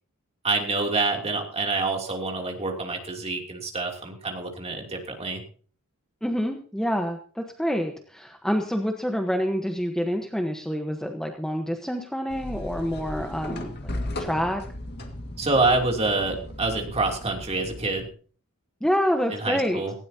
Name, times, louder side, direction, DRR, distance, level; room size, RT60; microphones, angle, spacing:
voice 1, 0.4-5.4 15.4-18.1 19.3-19.9, right 3 dB, 30° right, 2 dB, 2.9 m, -26 dB
voice 2, 6.2-13.9 14.2-14.6 18.8-19.8, equal, 5° left, 3 dB, 1.1 m, -27 dB
sound 1, 12.3-18.0, left 1 dB, 50° left, 1.9 m, -36 dB
18.5 x 16.5 x 2.8 m, 0.42 s
head